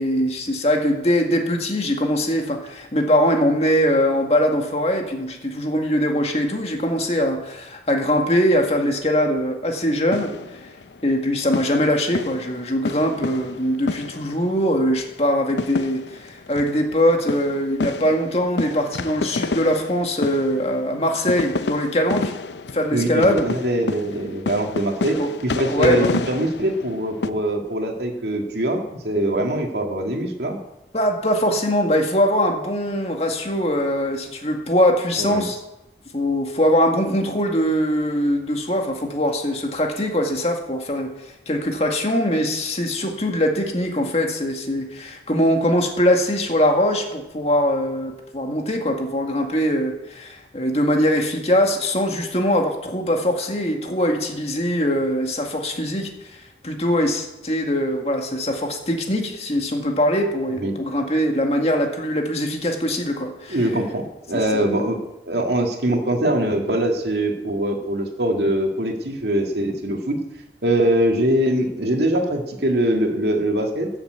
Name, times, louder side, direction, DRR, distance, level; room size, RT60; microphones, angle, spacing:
voice 1, 0.0-10.3 11.0-22.3 22.7-23.4 25.2-25.3 25.7-26.2 30.9-35.6 36.1-41.1 41.5-56.1 56.6-63.6 64.3-64.7, equal, 35° left, 2 dB, 1.9 m, -22 dB
sound 1, 10.1-11.2 11.5-14.6 15.0-15.1 15.5-27.3, left 3 dB, 80° left, 0.6 m, -29 dB
voice 2, 22.9-30.6 35.2-35.5 60.6-60.8 63.5-70.2 70.6-73.9, right 1 dB, 70° right, 3 dB, 2.0 m, -23 dB
14.0 x 7.3 x 8.0 m, 0.92 s
head